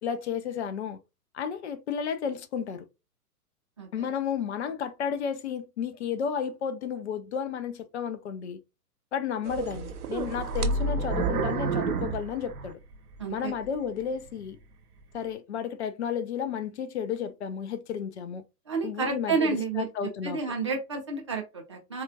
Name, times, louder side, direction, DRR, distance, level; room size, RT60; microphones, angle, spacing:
voice 1, 0.0-1.0 1.3-2.9 3.9-8.6 9.1-12.8 13.3-14.6 15.1-18.4 18.8-20.4, left 7 dB, 45° left, 0.6 m, -32 dB
sound 1, 9.4-13.2 13.7-13.8 14.4-14.5, right 4 dB, 65° right, 0.7 m, -29 dB
voice 2, 13.2-13.5 18.7-19.9 20.2-22.0, right 4 dB, 20° right, 0.4 m, -30 dB
4.1 x 2.3 x 2.8 m
figure-of-eight pair, 115°, 48 cm